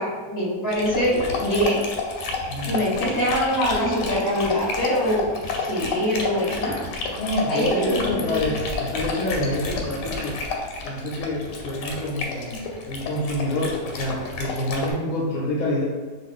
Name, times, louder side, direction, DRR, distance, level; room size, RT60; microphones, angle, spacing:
voice 1, 0.0-1.9 2.7-6.9 7.5-8.4, equal, 15° left, -7 dB, 0.6 m, -24 dB
Dog, 0.7-14.9, left 3 dB, 85° left, 1.2 m, -30 dB
voice 2, 2.5-2.8 7.2-10.3 10.8-15.8, left 1 dB, 70° left, -5 dB, 0.9 m, -27 dB
2.5 x 2.4 x 3.5 m, 1.4 s
omnidirectional pair, 1.8 m